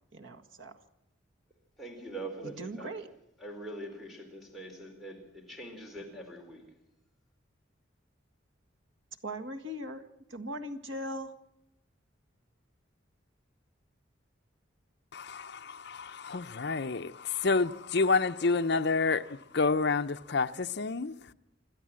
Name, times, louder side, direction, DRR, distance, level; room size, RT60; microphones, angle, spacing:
voice 1, 0.1-0.7 2.4-3.1 9.2-11.3, equal, 75° right, 1.8 m, -39 dB
voice 2, 1.8-2.9 3.4-6.6, right 1 dB, ahead, 4.3 m, -43 dB
voice 3, 15.1-21.3, left 4 dB, 55° left, 0.7 m, -29 dB
27.0 x 12.5 x 7.6 m
head